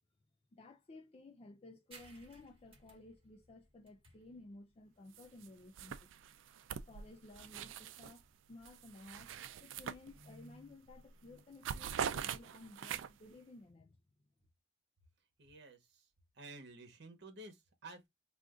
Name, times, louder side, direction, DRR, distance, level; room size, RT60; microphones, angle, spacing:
voice 1, 0.5-6.1 6.8-9.3 9.6-14.0, left 2 dB, 30° left, 0.4 m, -56 dB
sound 1, 1.9-9.0, right 3 dB, 30° right, 1.2 m, -64 dB
sound 2, 5.1-5.5 5.8-8.2 8.6-10.5 10.9-11.1 11.4-13.3, right 8 dB, 80° right, 0.3 m, -43 dB
voice 2, 15.4-16.1 16.3-18.1, right 2 dB, 65° right, 1.0 m, -53 dB
2.5 x 2.5 x 3.5 m
head